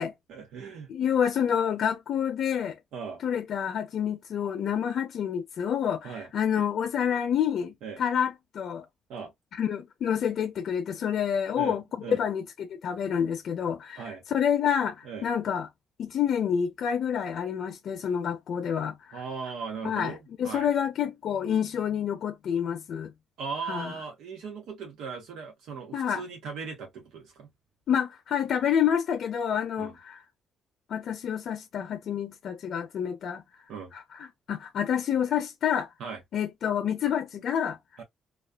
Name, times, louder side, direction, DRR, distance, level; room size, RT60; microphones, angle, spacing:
voice 1, 0.3-0.9 2.9-3.2 6.0-6.3 7.8-8.0 9.1-9.3 11.5-12.2 14.0-14.2 15.0-15.3 19.1-20.7 23.4-27.5 29.8-29.9 33.7-33.9 36.0-36.2 38.0-38.1, right 5 dB, 85° right, 1.0 m, -38 dB
voice 2, 0.9-2.8 3.2-8.9 9.6-11.8 12.1-14.0 14.3-15.7 16.0-19.2 19.8-23.1 23.7-23.9 25.9-26.2 27.9-30.2 30.9-33.4 33.9-35.9 36.3-37.8, left 8 dB, 65° left, 0.5 m, -28 dB
2.4 x 2.4 x 2.2 m
cardioid pair, 90°, 0 cm